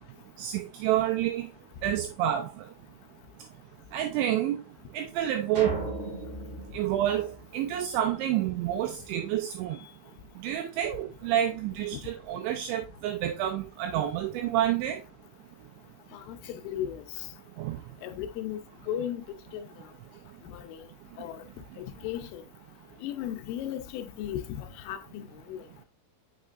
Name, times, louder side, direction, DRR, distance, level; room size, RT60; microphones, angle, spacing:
voice 1, 0.4-1.5 1.8-2.5 3.9-4.6 4.9-5.8 6.7-9.8 10.4-15.0 17.6-17.8, right 11 dB, 85° right, 2.6 m, -28 dB
sound 1, 5.5-8.1, right 2 dB, 40° right, 2.3 m, -38 dB
voice 2, 16.1-17.3 18.0-18.6 18.9-19.2 19.5-19.7 20.4-20.9 21.2-21.4 21.8-22.4 23.0-25.2 25.5-25.6, left 11 dB, 80° left, 3.1 m, -36 dB
6.5 x 6.4 x 2.4 m
omnidirectional pair, 5.8 m